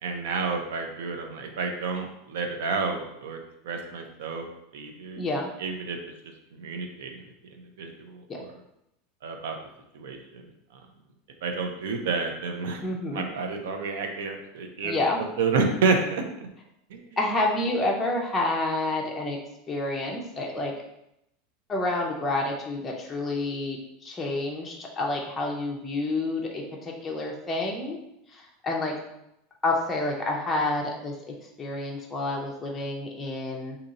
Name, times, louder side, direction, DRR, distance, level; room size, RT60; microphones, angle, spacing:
voice 1, 0.0-3.4 3.6-4.4 4.7-5.2 5.6-6.0 6.5-7.2 7.5-8.6 9.2-9.6 9.9-10.5 10.7-10.8 11.4-12.8 13.1-15.0 15.4-16.5 16.9-17.2, right 4 dB, 85° right, 4 dB, 0.5 m, -30 dB
voice 2, 5.1-5.5 8.3-8.4 12.8-13.2 14.8-15.2 17.2-19.4 19.7-20.7 21.7-28.0 28.3-28.9 29.6-33.8, left 2 dB, 15° left, -2 dB, 0.4 m, -29 dB
2.7 x 2.6 x 3.9 m, 0.83 s
supercardioid pair, 160°, 0 cm